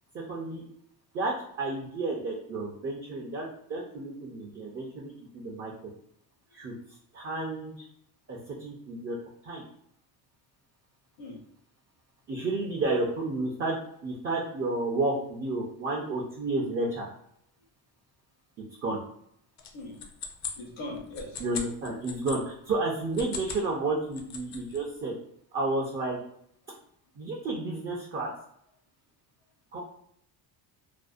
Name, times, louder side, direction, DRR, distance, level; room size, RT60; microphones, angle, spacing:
voice 1, 0.1-0.6 1.1-5.7 6.5-6.7 7.1-7.9 8.3-9.2 9.4-9.6 12.3-13.8 14.0-17.1 18.8-19.0 21.4-25.1 25.5-26.2 27.2-28.3 29.7-29.8, right 2 dB, 30° right, -2 dB, 0.4 m, -31 dB
sound 1, 19.6-22.4 23.0-23.7 24.0-24.8, left 6 dB, 40° left, 0.4 m, -39 dB
voice 2, 20.5-21.4, left 2 dB, 75° left, -5 dB, 0.9 m, -40 dB
2.5 x 2.1 x 2.4 m, 0.71 s
cardioid pair, 110°, 46 cm